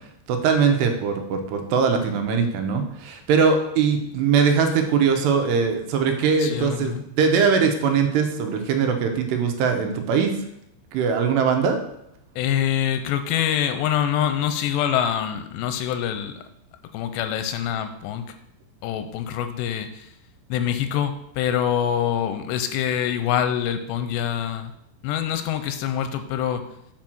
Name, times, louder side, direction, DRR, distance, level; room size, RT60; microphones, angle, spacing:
voice 1, 0.3-10.3 10.9-11.8, right 6 dB, 85° right, 5 dB, 2.9 m, -21 dB
voice 2, 6.4-7.0 12.4-16.4 16.9-18.3 18.8-20.1 20.5-24.7 25.0-26.6, left 9 dB, 90° left, 9 dB, 2.8 m, -25 dB
7.5 x 4.7 x 6.0 m, 0.79 s
omnidirectional pair, 4.9 m